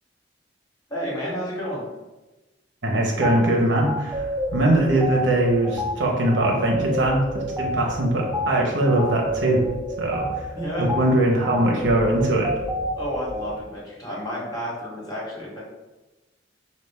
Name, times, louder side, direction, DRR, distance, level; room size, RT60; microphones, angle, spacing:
voice 1, 0.9-1.8 10.5-10.9 12.9-15.6, equal, 20° left, -6 dB, 1.4 m, -31 dB
voice 2, 2.8-4.3 4.5-9.6 10.0-10.5 10.8-12.5, right 1 dB, 85° right, -1 dB, 1.0 m, -21 dB
sound 1, 3.2-3.4 3.9-13.6, equal, 10° right, 0.4 m, -29 dB
5.0 x 2.5 x 3.5 m, 1.1 s
head